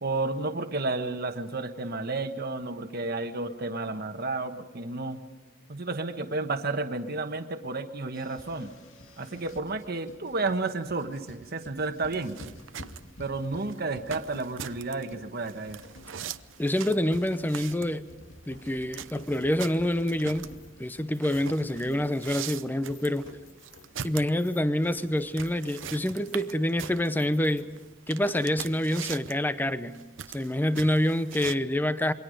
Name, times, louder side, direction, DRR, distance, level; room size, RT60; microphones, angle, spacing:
voice 1, 0.0-5.2 5.7-8.7 9.2-12.4 13.2-15.8, right 3 dB, 55° right, 6 dB, 1.3 m, -31 dB
sound 1, 8.1-27.9, left 1 dB, 90° left, 2.5 m, -51 dB
sound 2, 12.1-31.6, right 9 dB, 80° right, 0.7 m, -42 dB
voice 2, 16.6-18.1 18.5-20.5 20.8-23.3 24.0-27.7 28.1-30.0 30.3-32.1, left 1 dB, 10° left, 12 dB, 0.8 m, -27 dB
27.5 x 23.0 x 5.2 m, 1.2 s
head